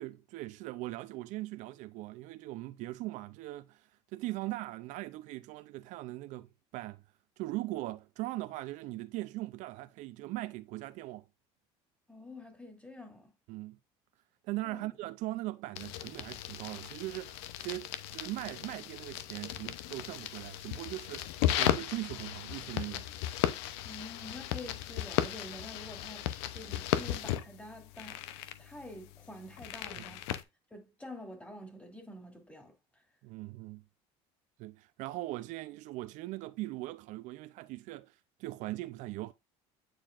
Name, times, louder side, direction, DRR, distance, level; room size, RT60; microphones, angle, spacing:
voice 1, 0.0-7.0 7.4-11.2 13.5-13.8 14.4-23.1 30.0-30.1 33.2-33.8 34.6-39.3, right 18 dB, 65° right, 0.4 m, -40 dB
voice 2, 12.1-13.3 14.6-14.9 23.8-28.2 28.6-30.2 30.7-32.7, left 1 dB, 10° left, 2.4 m, -47 dB
sound 1, 15.8-30.4, left 13 dB, 85° left, 0.6 m, -36 dB
9.0 x 4.4 x 2.4 m
supercardioid pair, 95°, 13 cm